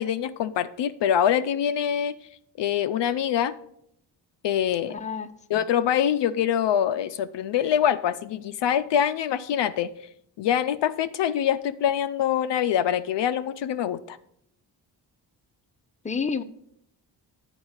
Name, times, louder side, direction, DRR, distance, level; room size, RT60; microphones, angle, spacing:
voice 1, 0.0-2.1 2.6-3.6 4.4-5.0 5.5-9.9 10.4-14.2, left 9 dB, 60° left, 11 dB, 0.5 m, -24 dB
voice 2, 4.9-5.6 16.0-16.4, left 5 dB, 15° left, 8 dB, 0.6 m, -30 dB
8.9 x 4.6 x 6.3 m, 0.72 s
supercardioid pair, 45°, 49 cm